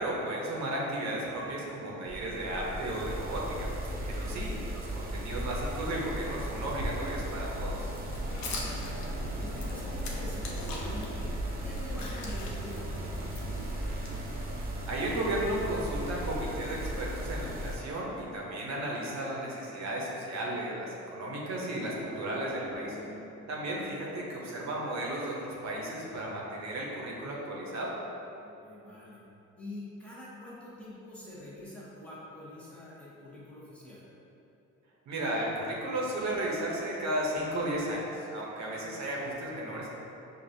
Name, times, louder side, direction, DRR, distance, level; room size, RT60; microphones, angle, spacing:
voice 1, 0.0-3.7 4.1-7.9 14.9-23.0 23.5-27.9 35.1-39.9, right 1 dB, 65° right, -4 dB, 0.8 m, -34 dB
sound 1, 2.1-17.8, right 1 dB, 30° right, 0.6 m, -36 dB
voice 2, 4.0-4.4 8.2-8.9 9.4-11.3 11.6-13.6 22.7-23.8 28.4-29.2 29.6-34.1, left 1 dB, 5° left, -8 dB, 0.9 m, -46 dB
sound 2, 7.9-11.1 11.5-14.6, left 3 dB, 70° left, 0.6 m, -43 dB
4.7 x 2.4 x 2.6 m, 2.9 s
cardioid pair, 90°, 30 cm